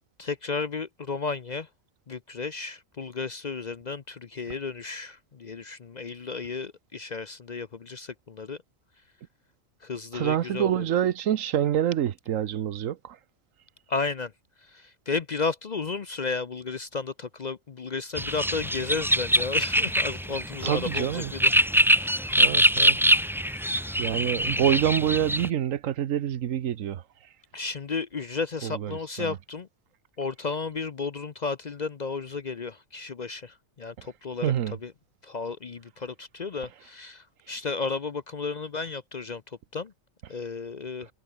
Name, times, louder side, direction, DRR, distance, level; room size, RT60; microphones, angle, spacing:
voice 1, 0.2-1.7 2.1-8.6 9.8-10.8 13.9-14.3 14.7-21.5 22.0-22.5 23.5-23.6 27.5-29.7 30.2-34.5 34.8-34.9 35.2-39.4 39.7-39.9 40.3-41.1, left 4 dB, 40° left, 0.7 m, -33 dB
voice 2, 10.1-13.2 20.6-21.3 22.4-23.0 24.0-27.0 28.6-29.4 34.4-34.8, right 10 dB, 80° right, 1.2 m, -26 dB
sound 1, 18.2-25.5, equal, ahead, 1.1 m, -24 dB
omnidirectional pair, 1.3 m